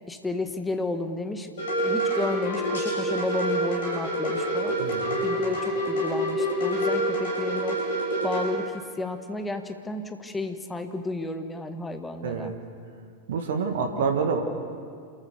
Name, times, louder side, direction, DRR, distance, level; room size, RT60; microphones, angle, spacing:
voice 1, 0.1-1.5 1.8-4.8 5.2-7.8 8.2-12.5, left 2 dB, 10° left, 7 dB, 1.5 m, -32 dB
sound 1, 1.6-8.5, right 1 dB, 60° left, 7.1 m, -27 dB
voice 2, 4.8-5.2 12.2-12.5 13.3-14.4, right 5 dB, 60° right, 5 dB, 1.9 m, -27 dB
28.0 x 14.0 x 7.1 m, 2.2 s
figure-of-eight pair, 90°, 0 cm